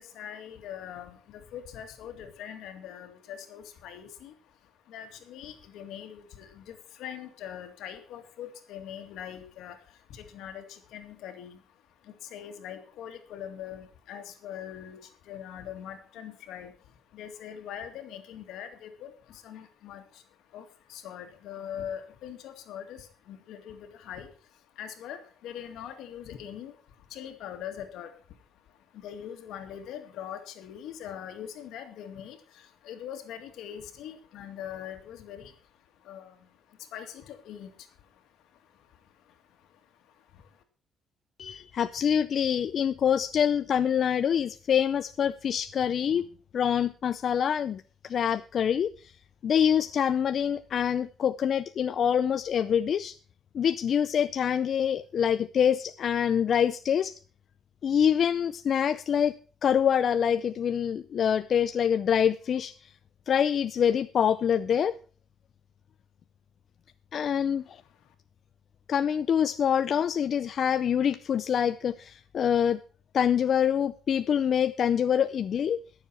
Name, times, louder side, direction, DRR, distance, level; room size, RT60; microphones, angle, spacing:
voice 1, 0.0-40.6 67.2-68.1, left 9 dB, 85° left, 2.2 m, -43 dB
voice 2, 41.4-46.3 46.5-49.1 49.4-53.2 53.5-57.1 57.8-59.3 59.6-62.9 63.3-64.9 67.1-67.8 68.9-72.8 73.1-75.8, left 8 dB, 60° left, 0.5 m, -25 dB
21.5 x 7.2 x 4.5 m
cardioid pair, 90°, 0 cm